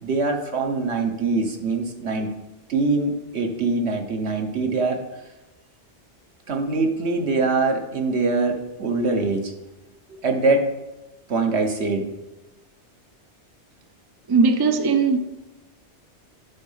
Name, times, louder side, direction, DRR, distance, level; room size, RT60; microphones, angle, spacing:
voice 1, 0.0-2.3 2.7-5.0 6.5-9.5 10.1-10.7 11.3-12.1, right 3 dB, 70° right, 1.4 m, -23 dB
voice 2, 14.3-15.2, right 4 dB, 35° right, 0.4 m, -18 dB
10.5 x 4.1 x 5.6 m
omnidirectional pair, 1.2 m